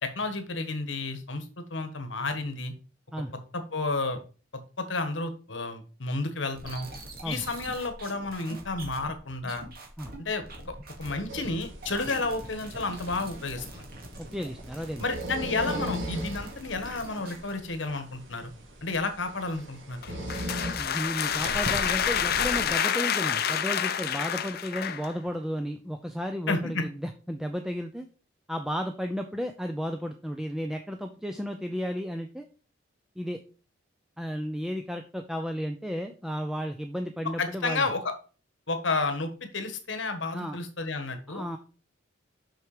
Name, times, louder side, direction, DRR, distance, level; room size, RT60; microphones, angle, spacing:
voice 1, 0.0-2.7 3.5-4.2 4.8-6.9 7.2-9.6 10.2-13.8 15.0-18.5 18.8-20.3 26.5-26.9 37.4-38.1 38.7-41.4, left 3 dB, 70° left, 8 dB, 1.4 m, -31 dB
sound 1, 6.5-11.3 11.6-17.5, right 1 dB, 50° right, 2.3 m, -44 dB
sound 2, 11.3-22.7, right 1 dB, 75° right, 2.2 m, -39 dB
voice 2, 14.3-15.0 20.8-28.1 28.5-32.5 33.2-33.4 34.2-37.9 40.3-40.6 41.3-41.6, equal, 5° right, 5 dB, 0.5 m, -33 dB
sound 3, 20.0-25.1, left 8 dB, 50° left, 0.6 m, -28 dB
6.4 x 6.0 x 4.9 m, 0.36 s
head